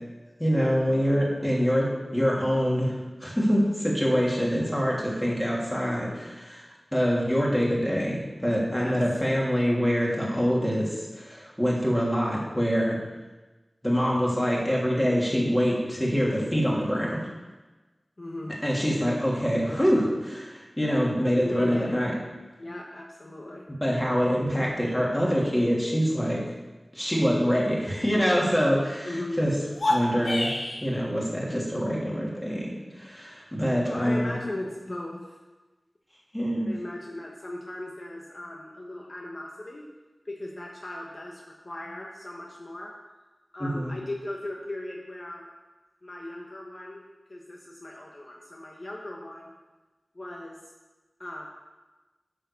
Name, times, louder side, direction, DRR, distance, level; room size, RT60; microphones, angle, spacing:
voice 1, 0.4-1.9 2.1-2.9 3.2-6.6 6.9-13.0 13.8-17.2 18.6-22.1 23.8-26.4 26.9-29.1 29.4-29.5 29.9-30.5 30.8-32.7 32.9-34.3 36.3-36.7 43.6-43.9, equal, 10° left, -4 dB, 3.2 m, -25 dB
voice 2, 18.2-18.6 21.4-21.9 22.6-23.6 29.0-29.5 33.8-35.4 36.6-39.8 40.2-42.9 43.5-45.5 46.0-49.5 50.1-50.6 51.2-51.5, left 1 dB, 50° left, -1 dB, 1.2 m, -37 dB
sound 1, 29.7-30.9, left 1 dB, 80° left, 1.5 m, -27 dB
9.1 x 6.6 x 7.0 m, 1.2 s
wide cardioid pair, 60°, 0 cm